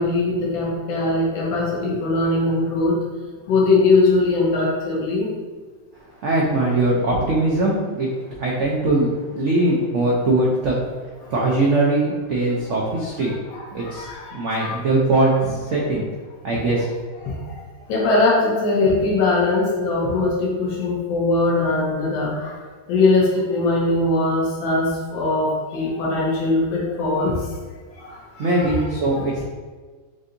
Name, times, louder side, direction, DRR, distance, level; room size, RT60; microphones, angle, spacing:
voice 1, 0.0-3.0 3.5-5.3 11.2-11.3 13.3-14.8 16.5-16.6 17.2-22.6 22.9-27.5 28.0-28.8 29.1-29.2, left 2 dB, 90° left, -3 dB, 1.6 m, -21 dB
voice 2, 6.2-8.1 8.4-10.8 11.3-13.3 13.7-16.1 16.4-16.9 28.4-29.4, right 2 dB, 80° right, -3 dB, 0.6 m, -21 dB
6.7 x 2.7 x 2.6 m, 1.4 s
omnidirectional pair, 2.0 m